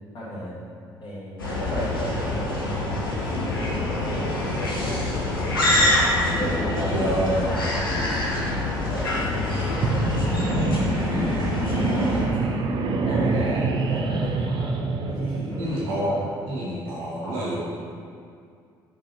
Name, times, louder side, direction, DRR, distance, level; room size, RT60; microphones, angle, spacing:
voice 1, 0.1-0.7 1.0-4.6 5.3-5.6 6.3-10.0 10.5-12.7 13.0-14.7 15.1-16.3 17.2-17.6, equal, 45° left, -10 dB, 1.5 m, -35 dB
sound 1, 1.4-12.2, left 2 dB, 85° left, 0.8 m, -25 dB
voice 2, 6.7-7.4 11.1-11.4 15.6-16.2 16.5-17.6, right 1 dB, 70° right, -6 dB, 1.2 m, -28 dB
sound 2, 9.7-15.9, right 3 dB, 45° right, 0.6 m, -26 dB
5.3 x 4.1 x 6.0 m, 2.3 s
figure-of-eight pair, 50°, 11 cm